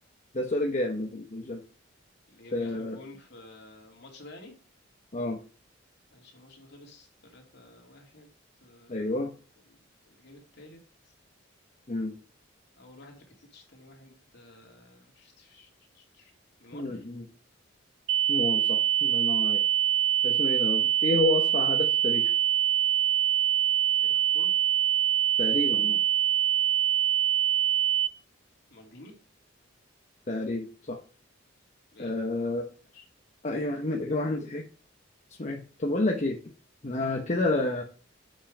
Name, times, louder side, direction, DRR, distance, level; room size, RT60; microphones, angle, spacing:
voice 1, 0.3-1.6 2.5-3.0 5.1-5.4 8.9-9.3 11.9-12.1 16.7-17.2 18.3-19.6 20.2-22.3 25.4-26.0 30.3-31.0 32.0-32.7 33.4-34.6 35.4-36.4 36.8-37.8, left 2 dB, 40° left, 2 dB, 0.9 m, -29 dB
voice 2, 2.3-4.6 6.1-8.3 8.6-9.2 9.7-10.8 11.0-11.1 12.8-16.3 16.6-17.0 19.3-19.5 24.0-24.5 28.7-29.2 31.9-32.2 32.9-33.1, left 2 dB, 60° left, 1 dB, 2.7 m, -51 dB
sound 1, 18.1-28.1, right 10 dB, 80° right, 0.5 m, -24 dB
7.5 x 5.5 x 5.1 m, 0.37 s
head